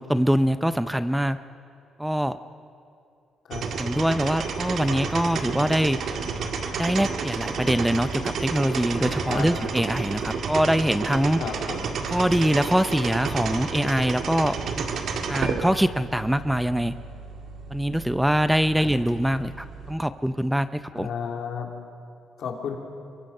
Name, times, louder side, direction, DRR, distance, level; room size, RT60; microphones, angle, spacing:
voice 1, 0.0-1.4 2.0-2.4 3.8-6.0 6.8-11.4 12.1-14.9 15.3-16.9 17.7-21.1, equal, 5° right, 12 dB, 0.6 m, -23 dB
sound 1, 3.5-19.9, right 5 dB, 65° right, 1.8 m, -31 dB
voice 2, 11.4-11.9 18.8-18.9 20.9-21.7 22.4-22.8, left 7 dB, 70° left, 2 dB, 2.9 m, -32 dB
25.0 x 23.0 x 5.5 m, 2.5 s
cardioid pair, 90°, 0 cm